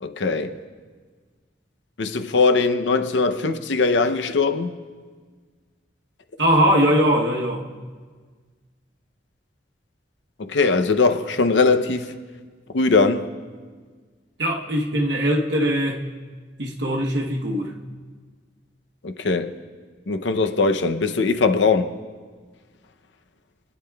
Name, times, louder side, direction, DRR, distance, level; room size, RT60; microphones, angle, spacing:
voice 1, 0.0-0.6 2.0-4.7 10.4-12.1 12.7-13.3 19.0-19.6 20.1-21.9, left 4 dB, 90° left, 0.6 m, -20 dB
voice 2, 6.4-7.6 14.4-16.0 16.6-17.7, equal, 75° right, 1.0 m, -21 dB
24.5 x 9.7 x 2.3 m
head